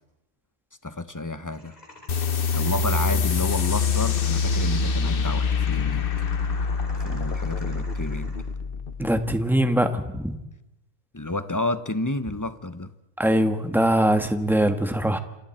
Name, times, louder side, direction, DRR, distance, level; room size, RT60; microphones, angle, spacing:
voice 1, 0.8-1.8 2.5-6.1 7.0-8.4 11.1-12.9, left 2 dB, 15° left, 1.0 m, -30 dB
sound 1, 1.5-8.5, left 1 dB, 35° left, 3.6 m, -48 dB
sound 2, 2.1-9.2, left 5 dB, 55° left, 1.1 m, -25 dB
voice 2, 9.0-10.4 13.2-15.2, right 1 dB, ahead, 1.5 m, -22 dB
28.0 x 27.5 x 4.4 m
omnidirectional pair, 1.2 m